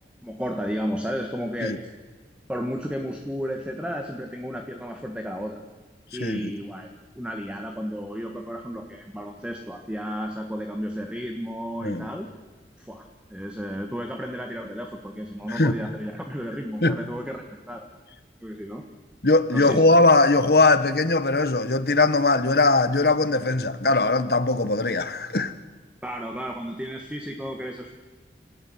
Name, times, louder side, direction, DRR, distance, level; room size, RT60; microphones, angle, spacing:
voice 1, 0.2-1.8 2.5-5.6 6.1-6.9 7.1-12.3 12.8-17.8 18.4-18.8 19.5-19.8 26.0-27.9, equal, 5° right, 1.6 m, -33 dB
voice 2, 6.2-6.5 11.8-12.1 15.5-15.8 16.8-17.0 19.2-25.5, left 2 dB, 60° left, 1.4 m, -20 dB
25.5 x 18.0 x 9.6 m
head